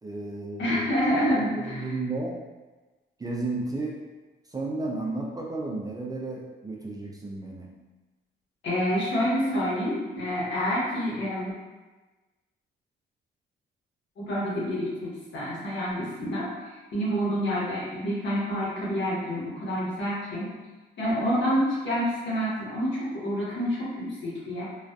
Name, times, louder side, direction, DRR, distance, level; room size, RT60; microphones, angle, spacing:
voice 1, 0.0-0.9 1.6-2.4 3.2-4.0 4.5-7.7, right 2 dB, 20° right, -3 dB, 0.3 m, -33 dB
voice 2, 0.6-1.9 8.6-11.5 14.2-16.5 16.9-20.5 21.0-24.6, equal, 65° left, -7 dB, 1.0 m, -28 dB
2.4 x 2.3 x 2.2 m, 1.2 s
cardioid pair, 90°, 20 cm